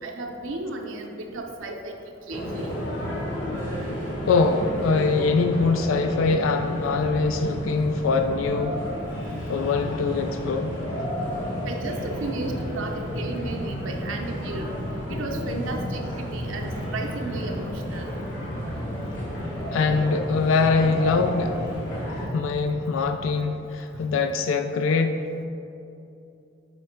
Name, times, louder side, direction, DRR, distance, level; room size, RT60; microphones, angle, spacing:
voice 1, 0.0-1.9 2.3-2.7 7.2-7.3 11.7-14.7 15.1-18.1 22.7-23.1, right 2 dB, 80° right, 2 dB, 0.6 m, -34 dB
sound 1, 2.3-22.3, equal, 65° left, 1.4 m, -31 dB
voice 2, 4.3-8.8 9.5-10.7 19.7-21.6 22.3-25.2, left 4 dB, 85° left, 6 dB, 0.3 m, -23 dB
8.1 x 3.2 x 4.4 m, 2.7 s
head